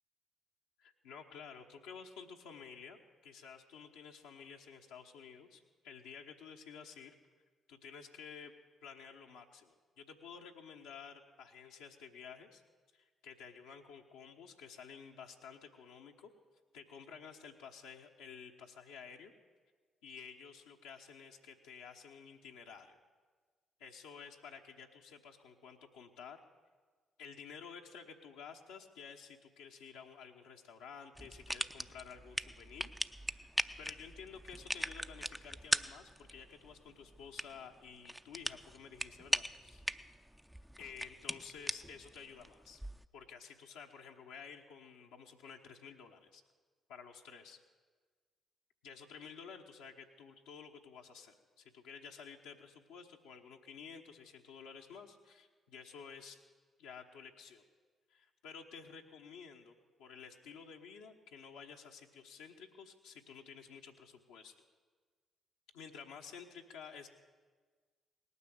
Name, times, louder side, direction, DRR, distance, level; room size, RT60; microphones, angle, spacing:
voice 1, 0.8-7.2 7.7-8.5 8.8-12.6 12.9-16.3 16.7-19.3 20.0-23.0 23.8-26.4 27.2-32.9 33.3-33.5 33.8-39.8 40.8-42.8 43.1-46.4 46.9-47.6 48.8-56.4 56.8-57.6 58.1-64.5 65.7-67.1, left 6 dB, 80° left, 0 dB, 1.1 m, -52 dB
sound 1, 31.1-43.1, equal, 5° right, 0.5 m, -40 dB
18.5 x 9.7 x 7.8 m, 1.4 s
hypercardioid pair, 45°, 0 cm